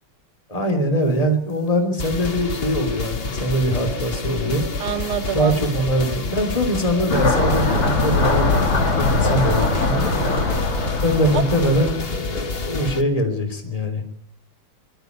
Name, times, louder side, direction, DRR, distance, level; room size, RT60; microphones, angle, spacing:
voice 1, 0.5-4.6 5.3-10.1 11.0-14.0, equal, 15° left, 6 dB, 3.3 m, -22 dB
sound 1, 2.0-13.0, left 3 dB, 35° left, 1.1 m, -28 dB
voice 2, 4.8-5.6 9.3-9.4 9.6-10.5 11.3-11.7, right 9 dB, 75° right, 9 dB, 2.1 m, -29 dB
sound 2, 7.1-12.1, left 3 dB, 90° left, 3.8 m, -21 dB
23.0 x 13.0 x 9.4 m, 0.68 s
omnidirectional pair, 2.4 m